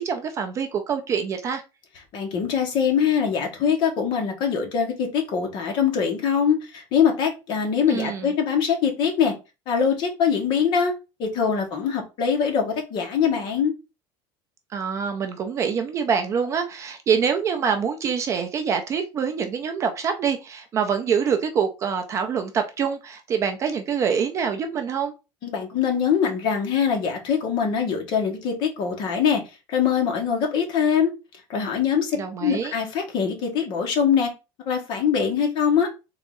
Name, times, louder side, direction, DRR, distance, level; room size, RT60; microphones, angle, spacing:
voice 1, 0.0-1.6 7.9-8.3 14.7-25.1 32.1-32.7, right 6 dB, 25° right, 0.4 m, -25 dB
voice 2, 2.1-9.3 9.7-10.9 11.2-13.7 25.4-29.4 29.7-31.1 31.5-34.3 34.6-35.9, left 7 dB, 40° left, 1.1 m, -23 dB
3.6 x 3.0 x 3.7 m
cardioid pair, 175°, 12 cm